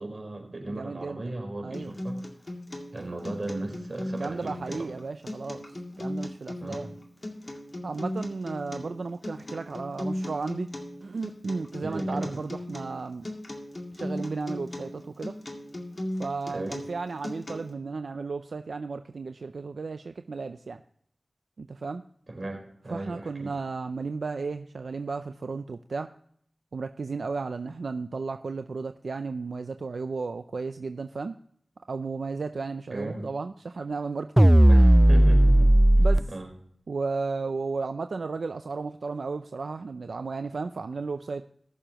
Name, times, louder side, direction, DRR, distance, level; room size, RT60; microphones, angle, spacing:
voice 1, 0.0-2.2 2.9-4.9 6.6-6.9 11.8-12.4 16.5-16.8 22.3-23.6 32.9-33.3 34.7-35.7 36.0-36.5, right 2 dB, 55° right, 2 dB, 4.2 m, -36 dB
voice 2, 0.7-1.3 1.6-1.9 4.2-6.9 7.8-10.7 11.0-13.3 13.9-15.4 16.1-20.8 21.6-22.0 22.9-26.1 26.7-31.4 31.9-34.5 35.9-36.3 36.9-41.4, right 4 dB, 85° right, 8 dB, 0.5 m, -34 dB
Acoustic guitar, 1.7-17.7, left 1 dB, 45° left, 2.2 m, -37 dB
sound 1, 34.4-36.2, right 1 dB, 15° right, 0.3 m, -16 dB
20.5 x 6.9 x 2.9 m, 0.66 s
wide cardioid pair, 45°, 0 cm